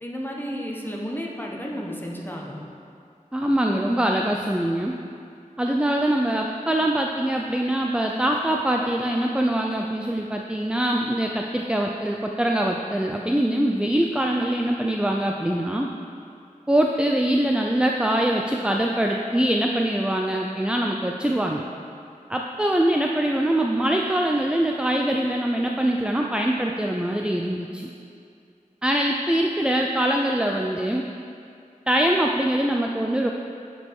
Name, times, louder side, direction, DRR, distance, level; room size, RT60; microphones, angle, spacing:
voice 1, 0.0-2.6, equal, 15° left, -2 dB, 1.3 m, -32 dB
voice 2, 3.3-5.0 5.6-15.9 16.7-21.6 22.3-27.9 28.8-31.1 31.9-33.3, right 1 dB, 5° right, 1 dB, 0.5 m, -23 dB
10.5 x 5.3 x 4.8 m, 2.4 s
wide cardioid pair, 45°, 14 cm